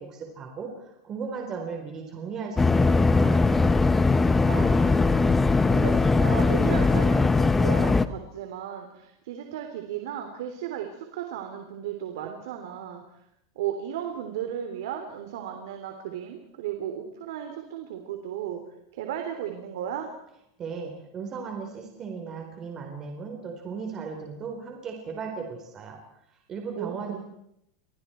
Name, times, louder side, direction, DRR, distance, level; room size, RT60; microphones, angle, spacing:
voice 1, 0.0-3.6 20.6-26.0 26.5-27.2, right 5 dB, 25° right, 2 dB, 4.2 m, -36 dB
sound 1, 2.6-8.1, left 3 dB, 10° left, 0.8 m, -20 dB
voice 2, 4.4-13.0 13.5-18.6 18.9-20.1 26.7-27.2, right 10 dB, 80° right, 5 dB, 3.4 m, -35 dB
29.5 x 26.0 x 4.6 m, 0.78 s
supercardioid pair, 155°, 2 cm